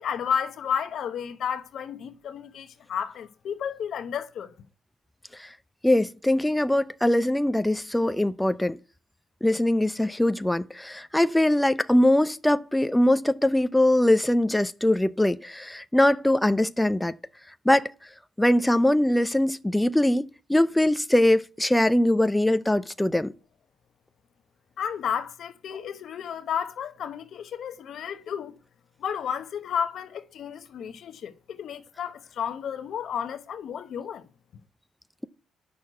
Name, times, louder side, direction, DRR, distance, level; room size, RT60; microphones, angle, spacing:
voice 1, 0.0-4.5 24.8-28.6 29.0-34.2, left 8 dB, 70° left, 1.0 m, -32 dB
voice 2, 5.8-8.8 9.4-17.1 17.7-17.9 18.4-23.3, left 1 dB, 10° left, 0.6 m, -22 dB
8.5 x 6.3 x 7.7 m
supercardioid pair, 60°, 0 cm